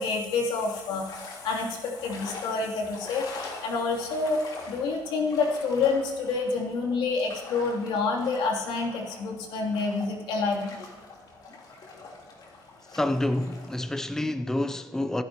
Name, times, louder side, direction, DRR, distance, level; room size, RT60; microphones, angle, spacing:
voice 1, 0.0-4.4 4.7-10.7, left 4 dB, 90° left, 3.1 m, -28 dB
sound 1, 0.5-13.8, left 3 dB, 60° left, 3.7 m, -44 dB
voice 2, 12.9-15.2, left 1 dB, 5° left, 0.6 m, -28 dB
25.0 x 11.0 x 3.0 m
cardioid pair, 120°, 8 cm